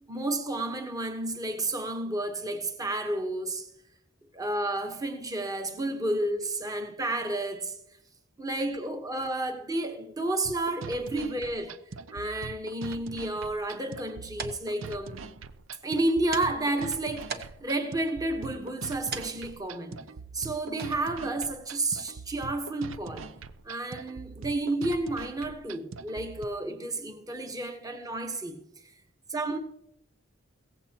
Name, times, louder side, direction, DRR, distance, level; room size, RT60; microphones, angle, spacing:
voice 1, 0.1-3.7 4.3-7.8 8.4-11.8 12.1-15.2 15.8-20.0 20.3-23.3 23.6-28.6 29.3-29.6, right 2 dB, 20° right, 1.2 m, -31 dB
sound 1, 10.4-26.4, right 4 dB, 70° right, 0.6 m, -43 dB
sound 2, 13.9-23.2, right 5 dB, 50° right, 1.1 m, -45 dB
16.5 x 15.0 x 2.9 m
head